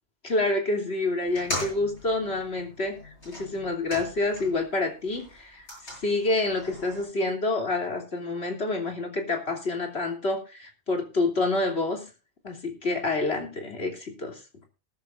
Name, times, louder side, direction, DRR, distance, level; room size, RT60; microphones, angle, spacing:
voice 1, 0.2-3.0 3.3-12.0 12.4-14.4, left 2 dB, 70° left, 4 dB, 3.4 m, -28 dB
sound 1, 1.2-4.7 5.0-7.0, left 1 dB, 85° left, 8.4 m, -39 dB
21.0 x 11.0 x 2.6 m, 0.31 s
omnidirectional pair, 1.1 m